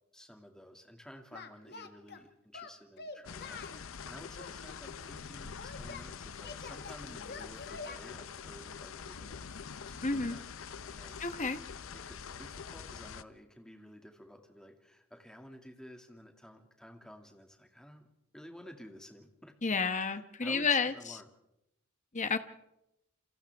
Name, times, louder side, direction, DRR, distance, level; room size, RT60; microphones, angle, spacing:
voice 1, 0.1-10.4 10.8-11.3 11.9-18.1 18.3-19.5 20.0-21.3, equal, 5° left, 3 dB, 2.3 m, -53 dB
Singing, 1.3-2.2 2.5-3.8 4.4-6.1 6.4-8.0, left 4 dB, 50° left, 1.6 m, -46 dB
sound 1, 3.3-13.2, left 6 dB, 65° left, 0.7 m, -45 dB
voice 2, 10.0-10.4 11.2-11.6 19.6-21.2 22.1-22.4, left 4 dB, 35° left, 10 dB, 1.1 m, -31 dB
28.0 x 27.5 x 3.5 m, 0.86 s
head